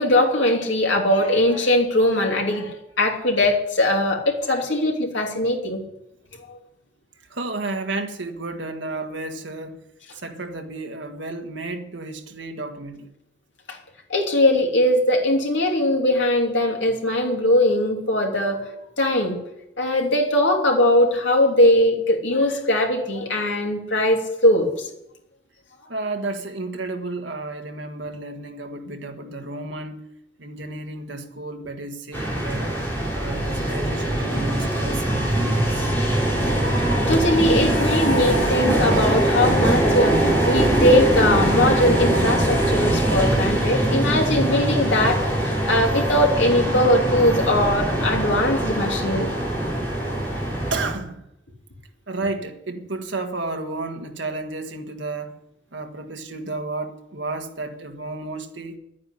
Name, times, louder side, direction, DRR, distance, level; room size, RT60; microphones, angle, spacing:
voice 1, 0.0-5.8 6.5-6.6 13.7-13.8 14.1-18.7 19.0-19.4 19.8-24.9 36.8-49.3, left 1 dB, 75° left, 3.0 m, -20 dB
voice 2, 7.3-9.8 10.1-13.1 25.9-30.0 30.4-32.7 33.1-35.9 50.7-51.2 52.1-55.3 55.7-58.8, right 2 dB, 70° right, 1.7 m, -32 dB
sound 1, 32.1-50.9, right 1 dB, 10° left, 4.2 m, -22 dB
11.0 x 9.5 x 9.9 m
head